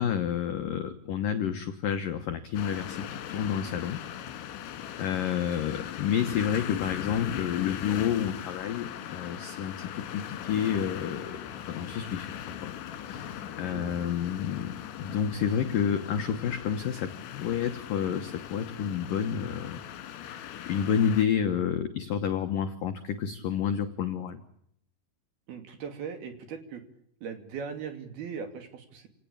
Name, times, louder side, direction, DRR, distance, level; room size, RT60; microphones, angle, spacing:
voice 1, 0.0-4.0 5.0-12.7 13.1-19.8 20.2-24.4, left 8 dB, 85° left, 7 dB, 1.9 m, -30 dB
sound 1, 2.6-21.3, left 10 dB, 70° left, 3.9 m, -39 dB
voice 2, 13.6-13.9 25.5-26.8 27.2-29.1, right 6 dB, 55° right, 7 dB, 4.1 m, -39 dB
28.5 x 18.5 x 8.8 m, 0.73 s
omnidirectional pair, 5.9 m